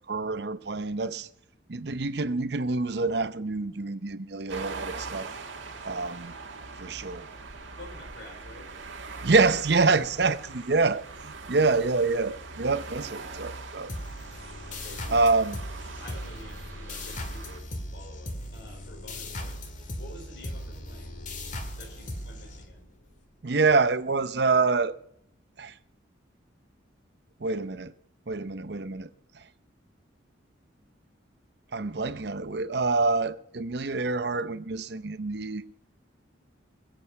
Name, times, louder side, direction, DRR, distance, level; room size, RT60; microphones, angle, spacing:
voice 1, 0.1-1.3 1.7-5.3 5.8-6.3 6.8-7.3 9.2-13.9 15.1-15.6 23.4-24.9 25.6-25.7 27.4-27.9 28.3-29.1 31.7-35.6, right 3 dB, 60° right, 0.7 m, -26 dB
sound 1, 4.5-17.6, right 4 dB, 85° right, 1.9 m, -42 dB
voice 2, 7.8-8.7 14.7-15.3 15.8-19.6 19.9-21.2 21.7-22.9, left 1 dB, 60° left, 4.2 m, -49 dB
sound 2, 13.9-23.1, left 1 dB, 40° left, 1.9 m, -38 dB
21.0 x 8.0 x 5.4 m
head